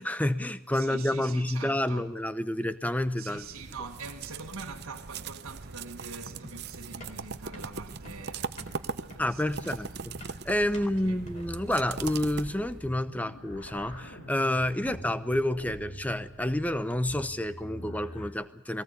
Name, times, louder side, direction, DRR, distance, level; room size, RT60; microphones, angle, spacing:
voice 1, 0.0-3.5 9.2-18.8, left 1 dB, 5° left, 0.8 m, -29 dB
voice 2, 0.7-2.1 3.2-9.8 10.7-11.3 14.8-15.0, right 4 dB, 80° right, 1.8 m, -44 dB
sound 1, 3.3-13.0, right 5 dB, 50° right, 0.8 m, -40 dB
sound 2, 6.4-12.3, left 1 dB, 35° left, 4.2 m, -50 dB
sound 3, 11.2-18.3, equal, 70° left, 4.7 m, -45 dB
21.5 x 18.5 x 8.2 m
head